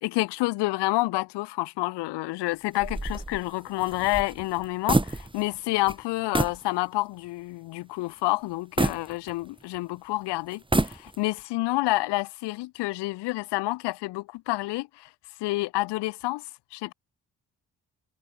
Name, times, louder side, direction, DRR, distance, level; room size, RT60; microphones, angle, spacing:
voice 1, 0.0-15.1 15.4-16.4 16.7-16.9, left 20 dB, 85° left, 3.4 m, -28 dB
sound 1, 2.8-5.6 5.9-6.0 6.3-6.7 7.1-7.2 8.8-9.8 10.5-11.4, right 2 dB, 10° right, 2.3 m, -28 dB
supercardioid pair, 50°, 40 cm